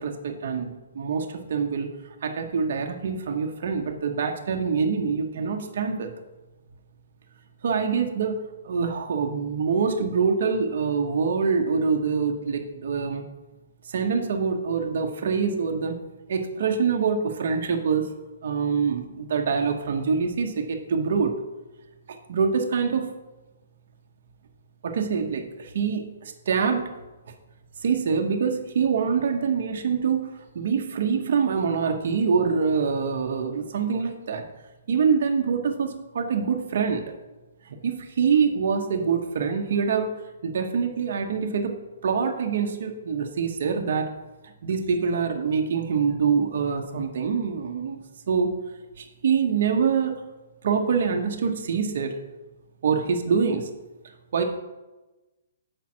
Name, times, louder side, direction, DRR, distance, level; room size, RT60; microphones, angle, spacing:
voice 1, 0.0-1.9 2.2-6.1 7.6-8.4 8.6-13.2 13.9-16.0 16.3-18.1 18.4-21.3 22.1-23.1 24.8-26.9 27.8-30.3 30.5-34.5 34.9-37.1 37.7-40.1 40.4-41.7 42.0-44.1 44.4-48.0 48.3-48.5 49.0-50.2 50.6-52.1 52.8-53.7 54.3-54.4, right 6 dB, 50° right, 4 dB, 0.8 m, -25 dB
7.3 x 5.2 x 4.3 m, 1.1 s
hypercardioid pair, 175°, 0 cm